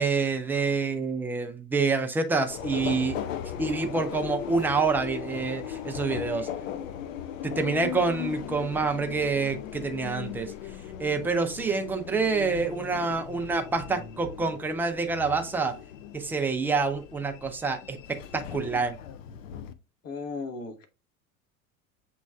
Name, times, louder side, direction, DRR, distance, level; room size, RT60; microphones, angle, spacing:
voice 1, 0.0-3.2 3.6-6.5 7.4-10.5 11.0-15.8 16.1-19.0, right 4 dB, 5° right, 0.4 m, -27 dB
Subway metro underground, 2.5-19.7, left 10 dB, 60° left, 0.6 m, -38 dB
voice 2, 20.0-20.9, left 4 dB, 35° left, 1.0 m, -36 dB
7.4 x 3.1 x 2.3 m
figure-of-eight pair, 80°, 44 cm